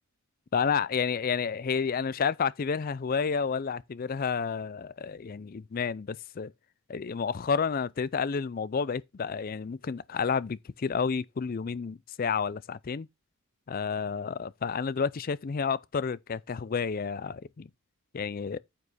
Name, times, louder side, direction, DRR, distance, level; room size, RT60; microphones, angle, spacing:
voice 1, 0.5-6.5 6.9-13.1 13.7-17.7 18.1-18.6, left 6 dB, 40° left, 0.4 m, -30 dB
9.2 x 5.2 x 4.2 m
head